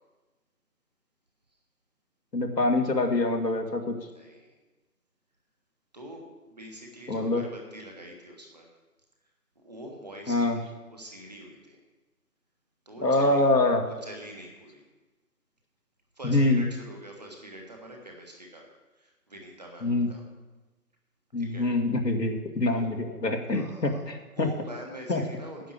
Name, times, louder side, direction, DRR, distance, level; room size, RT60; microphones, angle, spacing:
voice 1, 2.3-4.0 7.1-7.4 10.3-10.6 13.0-13.8 16.2-16.6 19.8-20.1 21.3-24.5 25.1-25.2, left 2 dB, 80° left, 3 dB, 2.2 m, -25 dB
voice 2, 4.1-4.6 5.9-8.7 9.5-11.8 12.8-13.5 13.8-14.8 16.2-18.6 18.9-20.2 21.4-21.7 22.7-22.9 23.5-24.0 24.3-25.7, equal, 25° right, 1 dB, 1.4 m, -44 dB
10.0 x 6.5 x 8.5 m, 1.2 s
figure-of-eight pair, 165°, 48 cm